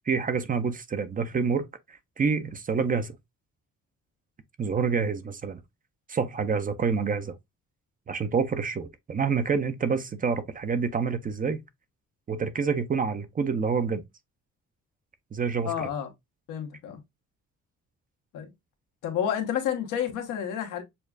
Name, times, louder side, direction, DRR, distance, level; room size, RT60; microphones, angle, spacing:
voice 1, 0.1-3.1 4.6-5.6 6.1-7.3 8.1-11.6 12.3-14.0 15.3-15.9, right 5 dB, 30° right, 0.5 m, -27 dB
voice 2, 15.6-16.1 16.5-17.0 18.3-18.5 19.0-20.8, left 9 dB, 90° left, 1.1 m, -30 dB
6.6 x 2.3 x 2.2 m
cardioid pair, 90°, 30 cm